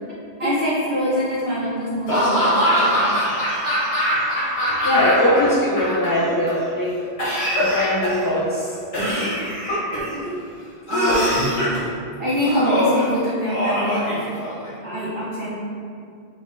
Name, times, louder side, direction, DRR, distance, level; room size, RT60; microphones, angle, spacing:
voice 1, 0.4-3.2 10.1-10.4 10.9-11.4 12.2-14.2 14.8-15.5, equal, 55° right, -10 dB, 1.0 m, -24 dB
Laughter / Cough, 2.1-5.4 5.6-6.5 7.2-8.3 8.9-10.1 10.9-11.8 12.5-13.0 13.5-14.7, equal, 80° left, 1.8 m, -22 dB
voice 2, 4.8-6.9 7.5-8.7, left 1 dB, 30° left, -5 dB, 0.4 m, -20 dB
5.5 x 2.1 x 3.7 m, 2.4 s
omnidirectional pair, 1.1 m